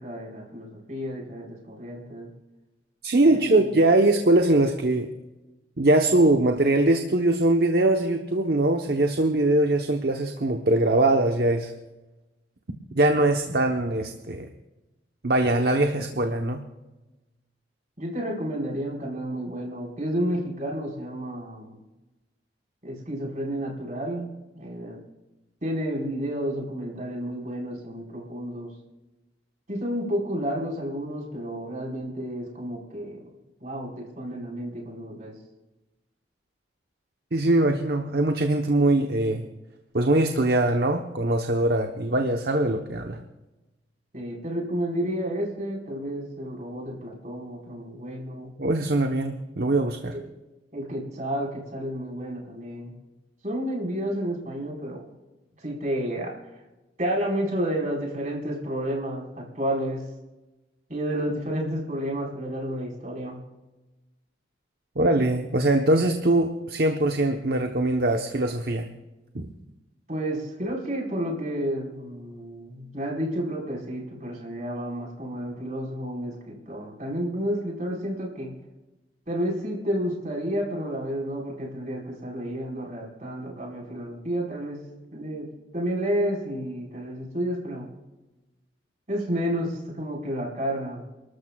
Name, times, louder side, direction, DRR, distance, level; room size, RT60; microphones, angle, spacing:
voice 1, 0.0-2.3 3.2-3.6 18.0-21.8 22.8-24.3 24.5-25.0 25.6-28.7 29.7-33.2 33.6-35.4 44.1-48.5 50.1-50.2 50.7-53.0 53.4-55.1 55.6-56.4 57.0-60.0 60.9-63.4 70.1-78.5 79.3-84.8 85.1-85.5 85.7-87.9 89.1-91.0, equal, 45° right, -2 dB, 4.7 m, -31 dB
voice 2, 3.0-5.1 5.8-11.7 12.9-14.5 15.2-16.6 37.3-39.5 39.9-43.2 48.6-50.2 65.0-68.9 69.3-69.5, right 2 dB, 60° right, 4 dB, 1.0 m, -22 dB
29.5 x 13.0 x 2.4 m, 1.1 s
head